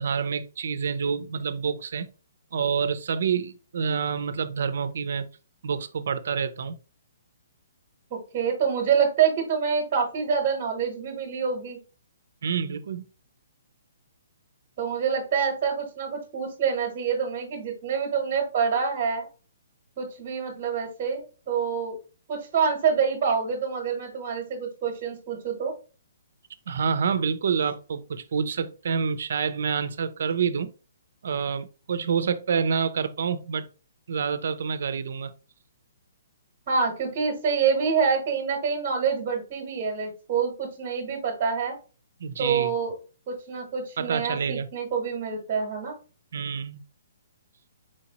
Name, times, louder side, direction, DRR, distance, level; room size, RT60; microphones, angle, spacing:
voice 1, 0.0-2.1 2.5-5.3 5.6-6.8 12.4-13.0 26.7-30.7 31.2-33.7 34.1-35.3 42.2-42.7 44.0-44.7 46.3-46.8, right 6 dB, 60° right, 0.5 m, -27 dB
voice 2, 8.1-11.8 14.8-19.3 20.0-22.0 22.3-25.7 36.7-41.8 42.4-42.9 43.3-45.9, right 6 dB, 30° right, 1.0 m, -26 dB
4.5 x 2.8 x 2.8 m
hypercardioid pair, 170°, 0 cm